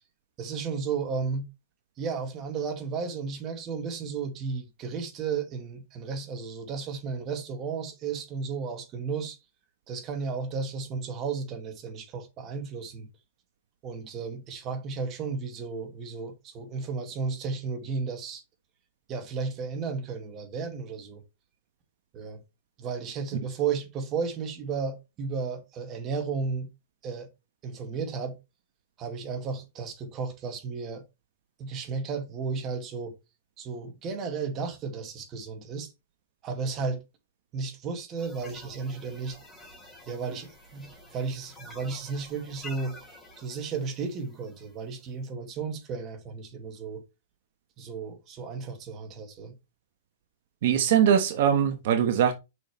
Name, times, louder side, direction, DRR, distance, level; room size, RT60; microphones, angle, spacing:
voice 1, 0.4-1.5 2.0-9.4 9.9-13.1 13.8-18.4 19.1-21.2 22.1-22.4 22.8-26.7 27.0-27.3 27.6-28.4 29.0-31.0 31.6-33.1 33.6-35.9 36.4-37.0 37.5-39.4 40.1-43.0 43.4-47.0 47.8-49.5, right 5 dB, 30° right, 2.2 m, -33 dB
sound 1, 38.2-45.1, left 2 dB, 5° left, 3.8 m, -49 dB
voice 2, 50.6-52.3, right 9 dB, 60° right, 1.2 m, -22 dB
6.4 x 5.8 x 3.3 m
hypercardioid pair, 130°, 0 cm